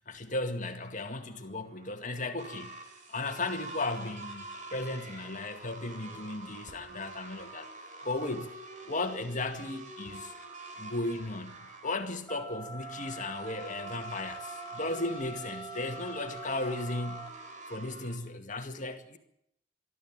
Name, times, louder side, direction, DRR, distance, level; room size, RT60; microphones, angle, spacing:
voice 1, 0.0-2.7 3.1-7.7 8.0-8.5 8.8-10.3 10.8-11.6 11.8-17.3 17.7-19.2, left 2 dB, 40° left, 2.1 m, -35 dB
sound 1, 1.0-18.2, right 2 dB, 40° right, 3.7 m, -47 dB
sound 2, 12.3-17.3, right 3 dB, 10° left, 2.5 m, -44 dB
23.0 x 13.0 x 9.0 m
head